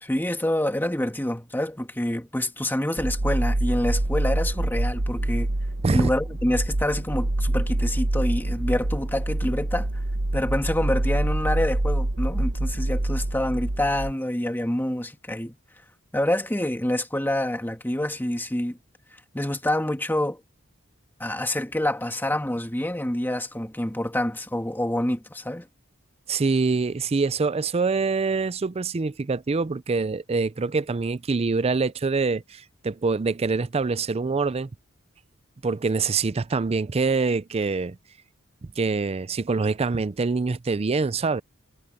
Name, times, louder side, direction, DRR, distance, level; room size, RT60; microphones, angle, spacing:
voice 1, 0.0-5.5 5.9-9.9 10.3-15.6 16.1-18.8 19.3-20.4 21.2-25.7, left 1 dB, 10° left, 1.9 m, -27 dB
sound 1, 3.0-14.1, right 1 dB, 75° right, 1.2 m, -26 dB
voice 2, 26.3-34.7 35.6-38.0 38.8-41.4, right 4 dB, 30° right, 0.4 m, -25 dB
head